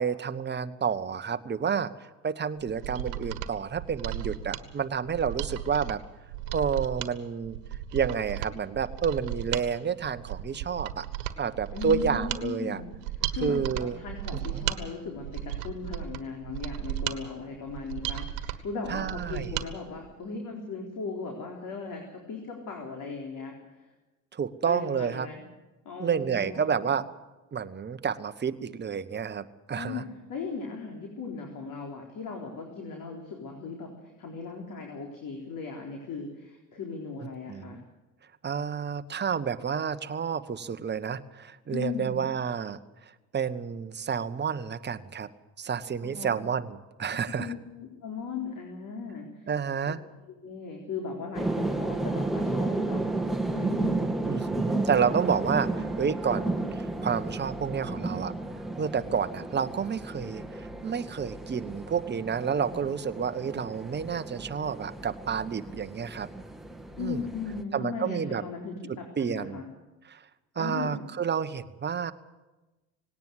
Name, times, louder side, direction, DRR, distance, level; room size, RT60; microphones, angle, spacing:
voice 1, 0.0-6.0 6.5-7.6 7.9-11.0 11.4-12.8 13.4-14.0 14.5-14.6 18.9-19.5 24.3-25.3 26.0-27.0 27.5-30.0 37.2-37.8 38.4-42.8 43.0-45.3 45.6-47.5 49.5-50.0 54.3-58.3 58.8-66.3 67.0-67.2 67.7-68.4 69.2-69.6 70.1-70.2 70.5-72.1, right 7 dB, 25° right, 10 dB, 1.2 m, -30 dB
Mechanisms, 2.6-19.7 20.0-20.1, right 12 dB, 65° right, 1.5 m, -35 dB
voice 2, 11.7-12.9 13.3-15.3 15.6-23.6 24.6-25.4 25.9-26.8 29.8-33.9 34.2-37.8 41.7-42.2 46.0-46.3 47.1-47.6 48.0-49.5 50.4-53.1 53.5-54.2 67.0-69.7 70.6-71.0, left 5 dB, 45° left, 1 dB, 4.1 m, -37 dB
sound 1, 51.3-67.6, right 2 dB, ahead, 1.9 m, -33 dB
sound 2, 51.6-60.3, left 7 dB, 65° left, 3.8 m, -54 dB
18.5 x 18.0 x 8.1 m, 1.1 s
hypercardioid pair, 70°, 44 cm